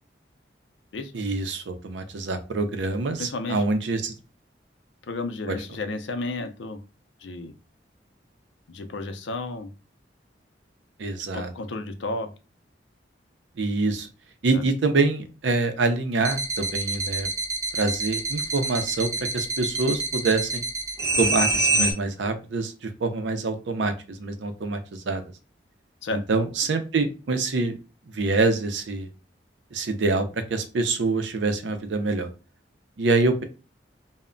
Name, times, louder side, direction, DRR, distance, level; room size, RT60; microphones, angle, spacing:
voice 1, 1.1-4.1 5.5-5.6 11.0-11.5 13.6-14.1 14.4-17.3 17.7-20.6 21.2-25.2 26.1-27.8 28.1-29.1 29.7-32.3 33.0-33.4, right 3 dB, 85° right, 8 dB, 0.5 m, -25 dB
voice 2, 3.2-3.6 5.1-6.8 7.2-7.5 8.7-9.7 11.3-12.3 14.5-14.6 26.0-26.2, left 2 dB, 90° left, 8 dB, 0.5 m, -32 dB
sound 1, 16.2-21.9, right 2 dB, 15° right, 0.4 m, -26 dB
2.1 x 2.1 x 3.7 m, 0.32 s
head